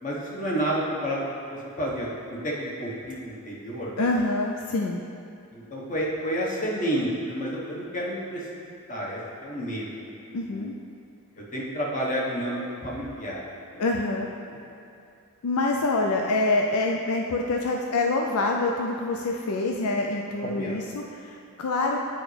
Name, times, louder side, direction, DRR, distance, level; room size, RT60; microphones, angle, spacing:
voice 1, 0.0-3.9 5.5-8.4 8.9-10.1 10.5-10.6 11.5-13.8 20.4-20.8, equal, 35° left, -4 dB, 1.1 m, -30 dB
voice 2, 4.0-5.0 10.3-10.7 13.8-14.3 15.4-22.0, left 2 dB, 75° left, 1 dB, 0.4 m, -26 dB
9.1 x 5.0 x 3.3 m, 2.5 s
head